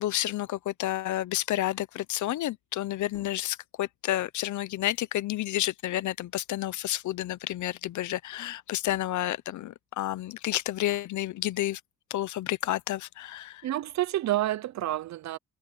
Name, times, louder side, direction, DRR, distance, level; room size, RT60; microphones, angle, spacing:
voice 1, 0.0-11.8 12.1-13.6, left 14 dB, 75° left, 0.9 m, -30 dB
sound 1, 3.0-3.6 5.3-6.1 8.7-9.4, left 2 dB, 10° left, 4.5 m, -58 dB
voice 2, 13.6-15.4, right 14 dB, 65° right, 0.8 m, -29 dB
cardioid pair, 90°, 30 cm